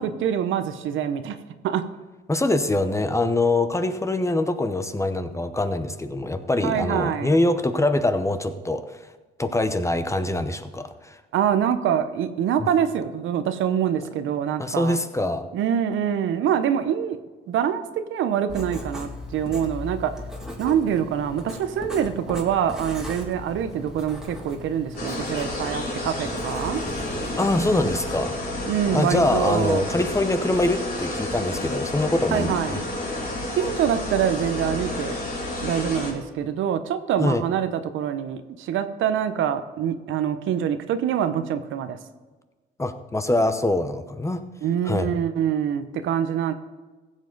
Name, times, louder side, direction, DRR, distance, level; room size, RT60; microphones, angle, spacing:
voice 1, 0.0-1.4 1.6-1.8 6.6-7.4 11.3-15.0 15.5-17.2 17.5-20.1 20.6-26.8 28.6-29.8 32.3-32.8 33.6-35.1 35.6-42.0 44.6-46.5, right 9 dB, 80° right, 10 dB, 0.8 m, -25 dB
voice 2, 2.3-9.0 9.4-11.2 12.6-12.7 14.6-15.5 27.4-28.3 28.9-32.8 37.2-37.4 42.8-44.4 44.8-45.1, left 2 dB, 15° left, 10 dB, 0.8 m, -24 dB
Writing, 18.5-28.1, left 1 dB, 5° right, 2.1 m, -38 dB
sound 1, 25.0-36.1, left 1 dB, 50° left, 3.8 m, -30 dB
15.5 x 7.3 x 4.0 m, 1.3 s
cardioid pair, 90°, 20 cm